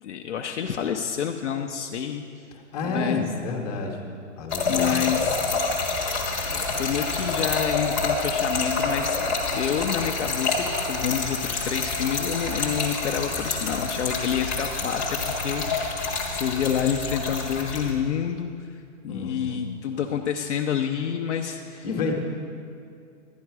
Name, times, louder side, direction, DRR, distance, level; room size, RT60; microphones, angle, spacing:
voice 1, 0.0-2.2 2.9-3.2 4.6-5.4 6.1-6.2 6.5-16.0 16.3-21.9, left 8 dB, 60° left, 3 dB, 0.7 m, -28 dB
voice 2, 2.7-4.0 4.4-5.4 19.1-19.7 21.8-22.1, left 3 dB, 30° left, 1 dB, 1.1 m, -30 dB
Trickle dribble / Fill (with liquid), 4.5-17.9, left 3 dB, 10° left, 0.6 m, -27 dB
11.5 x 9.9 x 4.7 m, 2.4 s
hypercardioid pair, 170°, 40 cm